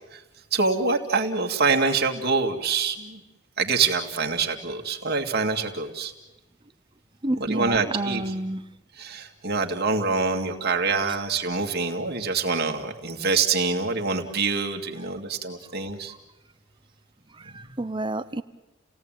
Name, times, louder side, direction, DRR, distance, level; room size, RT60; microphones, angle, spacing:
voice 1, 0.5-3.2 3.6-6.1 7.5-8.2 9.0-16.1 17.6-17.7, right 4 dB, 55° right, 3 dB, 2.3 m, -25 dB
voice 2, 7.2-8.6 16.1-16.2 17.3-18.4, right 2 dB, 25° right, 11 dB, 0.9 m, -29 dB
29.5 x 17.5 x 9.1 m, 1.1 s
head